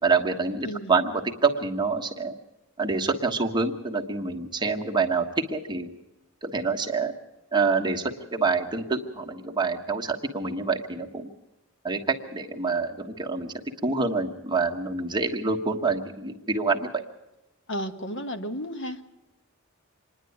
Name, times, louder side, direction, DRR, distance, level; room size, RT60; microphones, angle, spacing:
voice 1, 0.0-2.3 2.8-5.9 6.4-7.1 7.5-11.3 11.8-13.5 13.8-16.9, right 4 dB, 20° right, 2 dB, 1.4 m, -26 dB
voice 2, 17.7-19.0, equal, 60° left, 6 dB, 1.5 m, -33 dB
26.0 x 10.5 x 9.3 m, 0.99 s
head